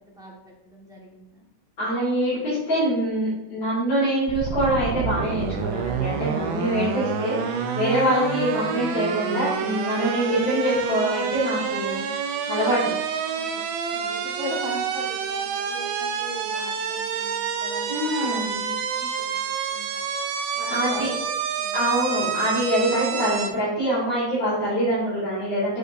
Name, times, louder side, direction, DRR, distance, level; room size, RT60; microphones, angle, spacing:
voice 1, 0.1-1.4 12.8-18.4 18.8-19.3 19.7-20.0 20.5-21.3 21.6-21.8, left 1 dB, ahead, -3 dB, 1.0 m, -40 dB
voice 2, 1.8-12.1 12.5-12.8 17.9-18.7 20.7-21.1 21.7-25.8, right 1 dB, 60° left, -10 dB, 3.3 m, -24 dB
sound 1, 4.3-23.5, right 6 dB, 80° right, 1.4 m, -28 dB
7.7 x 5.2 x 2.6 m, 0.91 s
omnidirectional pair, 2.3 m